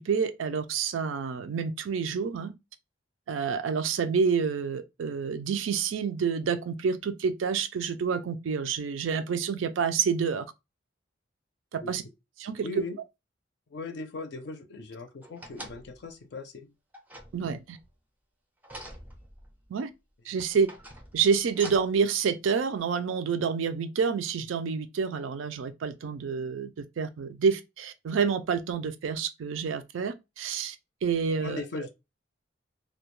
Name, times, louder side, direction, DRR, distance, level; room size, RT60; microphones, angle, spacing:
voice 1, 0.0-2.5 3.3-10.5 11.7-12.0 12.4-12.7 17.3-17.8 19.7-19.9 20.3-20.7 21.1-30.8 31.0-31.6, right 6 dB, 80° right, 0.4 m, -28 dB
voice 2, 12.6-13.0 13.7-16.7 31.4-31.9, left 3 dB, 60° left, 0.5 m, -38 dB
sound 1, 15.2-16.1 16.9-17.9 18.6-19.7 20.4-22.0 22.8-22.9, right 1 dB, 10° right, 0.4 m, -46 dB
2.3 x 2.1 x 3.0 m
head